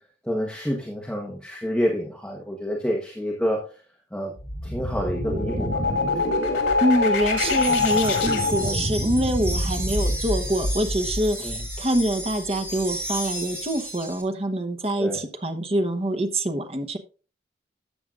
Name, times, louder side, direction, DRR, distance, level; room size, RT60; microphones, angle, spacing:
voice 1, 0.2-3.8 4.1-4.3 4.6-5.8 11.4-11.6 15.0-15.2, equal, 5° left, 1.2 m, -28 dB
sound 1, 4.4-12.0, left 2 dB, 85° left, 2.4 m, -25 dB
voice 2, 6.8-17.0, right 1 dB, 35° right, 1.0 m, -25 dB
sound 2, 7.4-14.2, right 1 dB, 15° right, 3.1 m, -34 dB
13.5 x 7.8 x 2.5 m
head